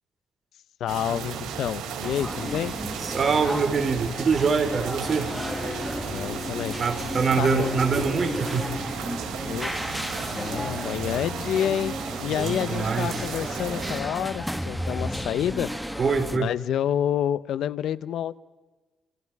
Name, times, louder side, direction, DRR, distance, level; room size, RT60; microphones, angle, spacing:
voice 1, 0.8-2.7 6.1-6.8 7.4-7.7 9.4-9.8 10.3-15.7 16.3-18.4, left 10 dB, 75° left, 17 dB, 0.9 m, -28 dB
sound 1, 0.9-14.0, right 7 dB, 85° right, 4.1 m, -35 dB
sound 2, 2.0-16.4, equal, ahead, 1.9 m, -34 dB
voice 2, 3.0-5.3 6.8-8.7 12.4-13.1 16.0-16.5, right 5 dB, 45° right, 7 dB, 4.0 m, -24 dB
sound 3, 3.2-8.8, left 4 dB, 40° left, 2.6 m, -40 dB
29.5 x 27.0 x 4.8 m, 1.2 s
cardioid pair, 90°, 0 cm